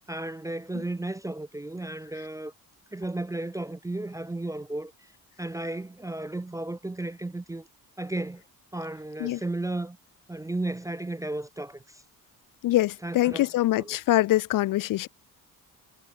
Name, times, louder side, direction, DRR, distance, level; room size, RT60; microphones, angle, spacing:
voice 1, 0.1-2.5 2.9-5.1 5.4-7.7 8.0-8.4 8.7-10.0 10.3-12.0 13.0-13.5 13.8-14.0, right 2 dB, 10° right, 0.4 m, -34 dB
voice 2, 12.6-15.1, left 16 dB, 65° left, 0.5 m, -24 dB
cardioid pair, 160°, 36 cm